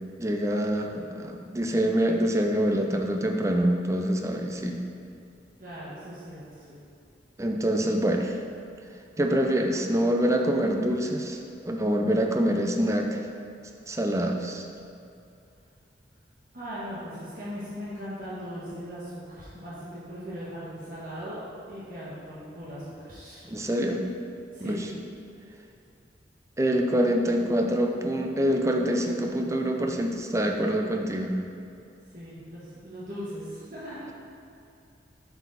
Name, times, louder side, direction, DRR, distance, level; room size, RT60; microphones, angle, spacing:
voice 1, 0.2-4.8 7.4-8.4 9.2-11.4 11.7-13.2 13.9-14.6 23.5-24.0 24.6-24.9 26.6-31.4, equal, 15° right, 2 dB, 0.5 m, -25 dB
voice 2, 5.6-6.8 16.5-21.4 21.7-23.5 24.5-24.9 32.1-34.0, equal, 50° right, -10 dB, 1.4 m, -39 dB
7.9 x 4.7 x 4.1 m, 2.6 s
head